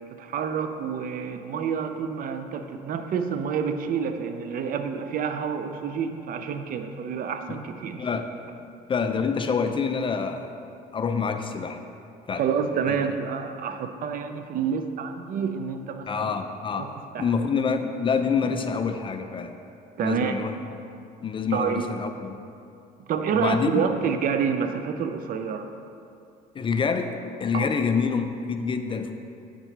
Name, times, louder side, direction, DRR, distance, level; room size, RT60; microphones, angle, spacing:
voice 1, 0.2-8.0 12.3-16.3 16.7-16.9 17.1-17.3 20.0-20.4 21.5-21.9 23.1-25.7 27.5-27.7, right 6 dB, 55° right, 8 dB, 0.6 m, -28 dB
voice 2, 8.0-8.3 8.9-10.5 10.9-11.8 12.3-12.5 12.9-13.0 16.1-19.6 20.0-20.6 21.2-22.4 23.3-23.9 26.5-27.1 27.4-29.2, left 5 dB, 30° left, 7 dB, 0.5 m, -27 dB
8.8 x 7.4 x 3.3 m, 2.5 s
cardioid pair, 110°, 17 cm